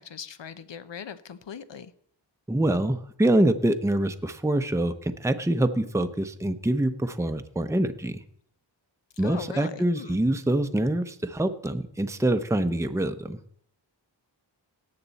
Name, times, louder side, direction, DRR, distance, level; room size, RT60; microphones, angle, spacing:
voice 1, 0.0-1.9 9.2-10.2, left 7 dB, 70° left, 13 dB, 0.8 m, -40 dB
voice 2, 2.5-8.2 9.2-13.4, right 1 dB, 5° right, 8 dB, 0.7 m, -25 dB
17.5 x 6.8 x 4.1 m, 0.66 s
wide cardioid pair, 50°, 45 cm